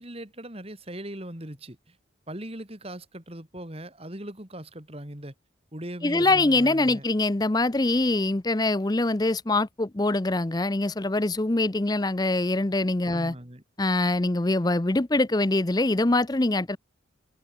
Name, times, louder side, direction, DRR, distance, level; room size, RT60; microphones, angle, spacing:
voice 1, 0.0-2.0 2.3-5.3 5.7-7.0 13.1-13.6, right 1 dB, 30° right, 3.1 m, -39 dB
voice 2, 6.0-13.3 13.8-16.8, left 2 dB, 20° left, 0.6 m, -24 dB
head